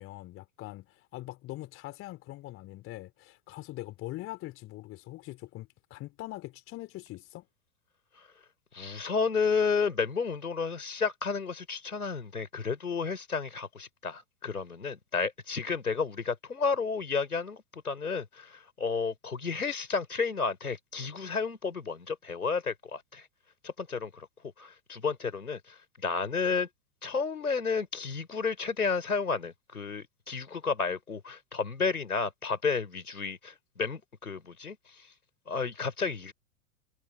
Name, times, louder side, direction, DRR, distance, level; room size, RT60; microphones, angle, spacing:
voice 1, 0.0-7.4, left 17 dB, 30° left, 3.0 m, -42 dB
voice 2, 8.7-23.3 23.6-24.3 24.6-26.7 27.0-35.1 35.5-36.3, left 5 dB, 75° left, 4.2 m, -32 dB
figure-of-eight pair, 100°, 44 cm